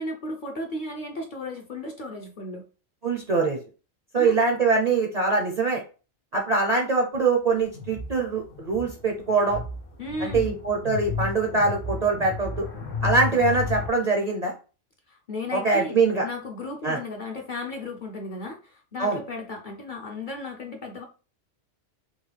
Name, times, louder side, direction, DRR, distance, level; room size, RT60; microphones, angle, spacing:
voice 1, 0.0-2.6 4.2-4.3 10.0-10.6 15.1-15.9 16.2-21.0, left 2 dB, 50° left, 1 dB, 0.7 m, -35 dB
voice 2, 3.0-3.6 4.1-5.8 6.3-9.6 10.2-12.7 13.0-14.5 15.5-16.3 16.8-17.0 19.0-19.2, right 4 dB, 40° right, 1 dB, 0.6 m, -23 dB
sound 1, 7.7-13.9, left 4 dB, 75° left, 1.6 m, -33 dB
5.3 x 2.3 x 3.3 m, 0.35 s
omnidirectional pair, 1.3 m